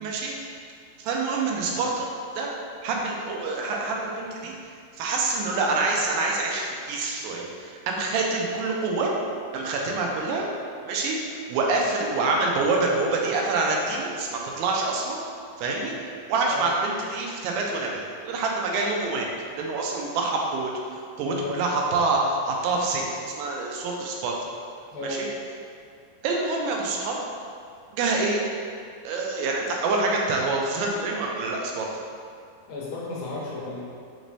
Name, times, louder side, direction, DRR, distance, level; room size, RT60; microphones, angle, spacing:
voice 1, 0.0-0.4 1.0-2.1 2.4-2.5 2.8-4.5 5.0-9.1 9.5-10.5 10.8-11.2 11.5-15.2 15.6-19.3 19.5-24.4 25.0-25.3 26.2-27.2 27.9-28.4 29.0-31.9, right 3 dB, 90° right, -1 dB, 2.4 m, -26 dB
voice 2, 21.2-21.6 24.9-25.3 32.7-33.8, left 2 dB, 85° left, -5 dB, 2.7 m, -33 dB
6.2 x 2.6 x 3.2 m, 2.3 s
omnidirectional pair, 4.0 m